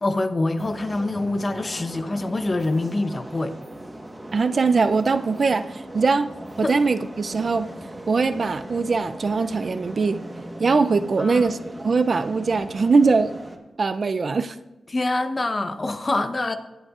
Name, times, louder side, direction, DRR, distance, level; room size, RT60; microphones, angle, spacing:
voice 1, 0.0-3.5 6.6-6.8 11.2-11.5 14.9-16.6, left 2 dB, 35° left, 9 dB, 0.9 m, -25 dB
sound 1, 0.6-13.6, right 1 dB, 15° right, 1.3 m, -38 dB
voice 2, 4.3-6.3 6.6-7.7 8.1-10.2 10.6-13.3 13.8-14.6, right 4 dB, 55° right, 11 dB, 0.4 m, -21 dB
21.0 x 8.0 x 2.5 m, 1.1 s
cardioid pair, 75°, 0 cm